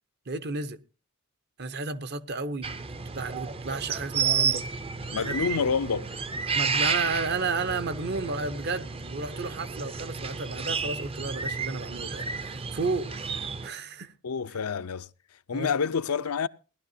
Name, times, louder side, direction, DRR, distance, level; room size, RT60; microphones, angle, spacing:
voice 1, 0.3-0.8 1.6-2.7 3.2-4.7 5.2-5.4 6.5-14.1 15.5-15.7, right 3 dB, 50° right, 0.8 m, -32 dB
sound 1, 2.6-13.7, right 5 dB, 25° right, 0.6 m, -31 dB
voice 2, 5.1-6.2 14.2-15.1 15.5-16.5, left 6 dB, 85° left, 0.6 m, -28 dB
18.5 x 12.0 x 2.7 m
head